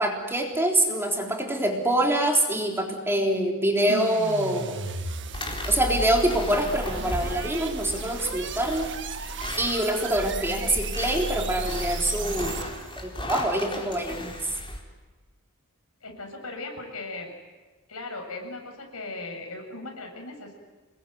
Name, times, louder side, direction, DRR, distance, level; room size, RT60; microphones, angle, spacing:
voice 1, 0.0-4.9 5.7-8.9 9.6-12.6 13.0-14.3, right 1 dB, 10° right, 1 dB, 3.7 m, -25 dB
sound 1, 3.9-13.0, right 3 dB, 55° right, 1.8 m, -34 dB
sound 2, 5.3-14.8, left 1 dB, 25° left, 4.4 m, -37 dB
voice 2, 16.0-17.3 17.9-20.5, left 2 dB, 80° left, 3 dB, 7.5 m, -38 dB
29.0 x 21.0 x 9.6 m, 1.3 s
head